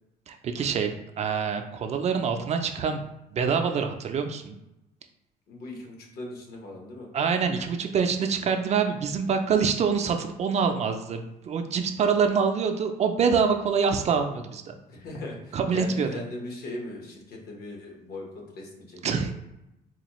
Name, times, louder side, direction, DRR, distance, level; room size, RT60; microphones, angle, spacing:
voice 1, 0.3-3.0 3.3-4.6 7.1-14.7 15.5-16.1 19.0-19.3, right 6 dB, 40° right, 6 dB, 0.4 m, -25 dB
voice 2, 5.5-7.1 14.9-19.3, left 2 dB, 65° left, 0 dB, 1.0 m, -39 dB
4.1 x 2.2 x 3.0 m, 0.88 s
cardioid pair, 110°, 17 cm